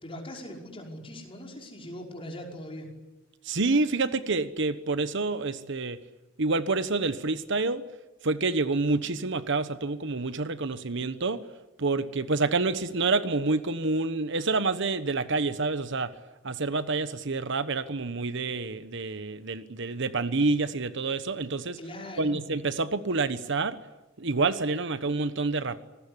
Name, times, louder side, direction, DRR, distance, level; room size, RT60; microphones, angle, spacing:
voice 1, 0.0-2.9 21.8-22.4, left 1 dB, 25° left, 1 dB, 5.5 m, -40 dB
voice 2, 3.4-6.0 6.4-7.8 8.2-11.4 11.8-16.1 16.4-21.8 22.2-23.8 24.2-25.9, right 3 dB, 60° right, 12 dB, 1.2 m, -28 dB
26.5 x 20.0 x 10.0 m, 1.1 s
head